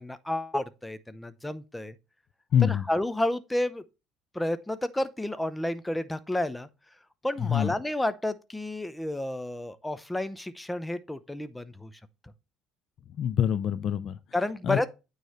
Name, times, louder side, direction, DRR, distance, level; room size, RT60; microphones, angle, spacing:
voice 1, 0.0-1.9 2.6-3.8 4.3-6.7 7.2-11.9 14.3-14.9, left 1 dB, 10° left, 0.7 m, -31 dB
voice 2, 2.5-2.8 7.4-7.7 13.2-14.2 14.6-14.9, left 9 dB, 55° left, 0.6 m, -25 dB
9.2 x 3.2 x 5.6 m
supercardioid pair, 90°, 0 cm